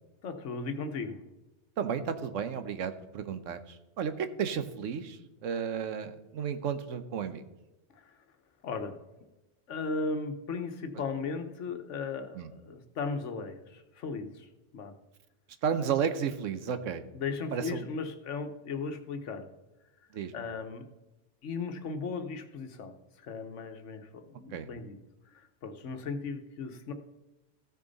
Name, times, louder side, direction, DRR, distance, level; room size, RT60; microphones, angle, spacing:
voice 1, 0.2-1.2 8.0-8.1 8.6-9.0 9.7-14.5 14.7-14.9 17.1-19.5 20.3-20.9 21.4-22.9 23.2-25.0 25.3-26.9, left 4 dB, 75° left, 7 dB, 1.3 m, -36 dB
voice 2, 1.8-7.4 12.3-12.5 15.6-17.1 17.5-17.9 20.1-20.3 24.5-24.7, right 7 dB, 85° right, 10 dB, 1.2 m, -33 dB
14.5 x 6.6 x 4.0 m, 1.0 s
omnidirectional pair, 1.3 m